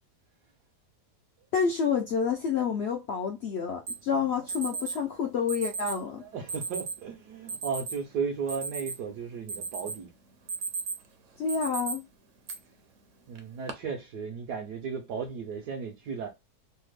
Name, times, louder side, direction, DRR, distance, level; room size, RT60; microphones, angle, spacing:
voice 1, 1.5-6.2 11.4-12.1, left 6 dB, 85° left, 0.5 m, -29 dB
Alarm, 3.9-4.0 4.5-5.0 5.5-6.0 6.5-7.0 7.5-7.9 8.3-9.1 9.5-10.0 10.3-11.1 11.5-11.9 12.5-12.6 13.4-13.7, right 4 dB, 60° right, 0.9 m, -34 dB
voice 2, 6.1-10.1 13.3-16.3, right 5 dB, 80° right, 1.2 m, -35 dB
3.3 x 2.0 x 3.1 m
omnidirectional pair, 1.7 m